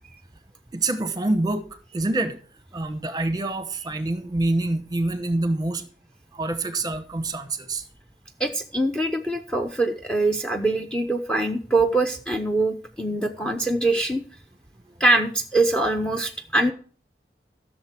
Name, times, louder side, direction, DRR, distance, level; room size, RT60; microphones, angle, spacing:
voice 1, 0.7-1.7 1.9-2.4 2.7-5.8 6.3-7.8, right 2 dB, 20° right, 10 dB, 1.0 m, -26 dB
voice 2, 8.4-14.2 15.0-16.7, right 2 dB, 5° left, 4 dB, 0.7 m, -23 dB
14.5 x 6.6 x 4.4 m, 0.43 s
head